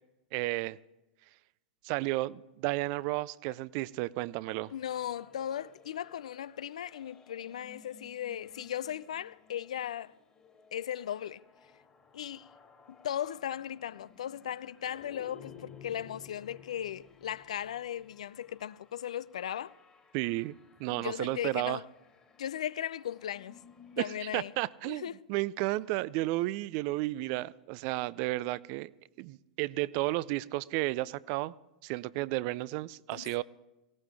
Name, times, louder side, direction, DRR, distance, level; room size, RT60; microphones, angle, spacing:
voice 1, 0.3-0.8 1.8-4.7 20.1-20.5 20.8-21.8 24.0-25.0 25.3-28.9 29.2-31.5 31.8-33.4, right 19 dB, 50° right, 0.4 m, -32 dB
sound 1, 4.4-24.2, left 6 dB, 20° left, 1.9 m, -57 dB
voice 2, 4.7-10.1 10.7-11.4 12.1-12.5 12.9-19.7 20.9-21.9 22.4-23.6 24.0-24.5 24.8-25.2 33.1-33.3, left 10 dB, 70° left, 0.4 m, -37 dB
18.5 x 17.0 x 3.4 m
figure-of-eight pair, 95°, 4 cm